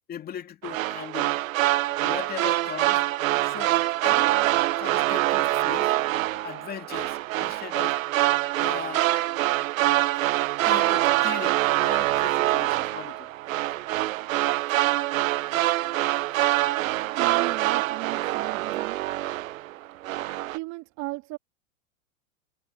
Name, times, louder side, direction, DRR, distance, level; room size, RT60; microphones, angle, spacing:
voice 1, 0.1-1.3 2.0-3.0 3.4-4.3 4.8-5.9 6.4-8.0 8.6-9.1 10.6-13.3, left 9 dB, 20° left, 2.5 m, -39 dB
sound 1, 0.6-19.7 20.0-20.6, right 15 dB, 70° right, 0.9 m, -25 dB
voice 2, 17.2-19.0 20.5-21.4, right 24 dB, 45° right, 3.1 m, -36 dB
supercardioid pair, 140°, 41 cm